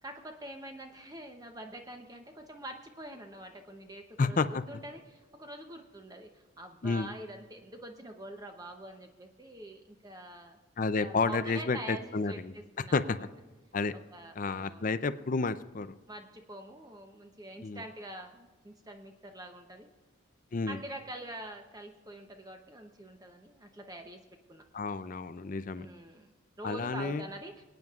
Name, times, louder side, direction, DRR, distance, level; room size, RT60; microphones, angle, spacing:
voice 1, 0.0-10.6 11.0-13.3 13.9-14.9 16.1-19.9 20.7-24.2 24.5-24.6 25.8-27.6, right 1 dB, 20° right, 4 dB, 0.7 m, -45 dB
voice 2, 4.2-4.6 6.8-7.1 10.8-12.5 12.9-13.0 13.7-13.9 14.4-15.9 17.6-17.8 20.5-20.8 24.7-25.9 26.6-27.3, left 4 dB, 40° left, 13 dB, 0.5 m, -30 dB
27.5 x 9.2 x 2.4 m, 1.3 s
head